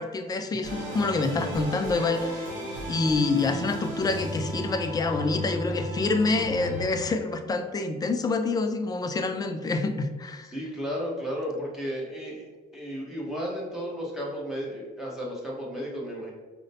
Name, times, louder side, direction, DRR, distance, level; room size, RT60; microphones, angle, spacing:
voice 1, 0.0-2.5 2.9-10.5, left 3 dB, 25° left, 7 dB, 0.3 m, -27 dB
sound 1, 0.6-6.9, right 1 dB, 50° right, 0.9 m, -34 dB
voice 2, 10.5-12.5 12.7-16.3, equal, ahead, -4 dB, 1.0 m, -33 dB
4.8 x 2.1 x 2.7 m, 1.3 s
cardioid pair, 110°, 17 cm